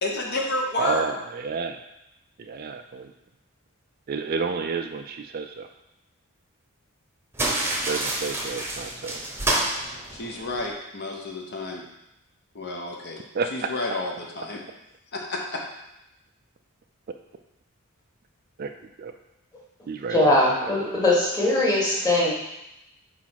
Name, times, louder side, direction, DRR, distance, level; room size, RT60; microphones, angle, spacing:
voice 1, 0.0-1.1 10.1-11.9 12.5-13.2 13.5-14.6 15.1-15.6, left 2 dB, 50° left, 0 dB, 0.9 m, -30 dB
voice 2, 0.8-1.8 2.4-3.1 4.1-5.7 7.7-9.2 13.3-13.5 18.6-18.7 19.0-19.1 19.9-20.8, right 5 dB, 40° right, 6 dB, 0.3 m, -30 dB
sound 1, 7.3-10.7, right 1 dB, 10° right, 0.9 m, -28 dB
voice 3, 20.1-22.3, left 1 dB, 20° left, -5 dB, 1.7 m, -21 dB
4.9 x 4.3 x 5.7 m, 0.88 s
head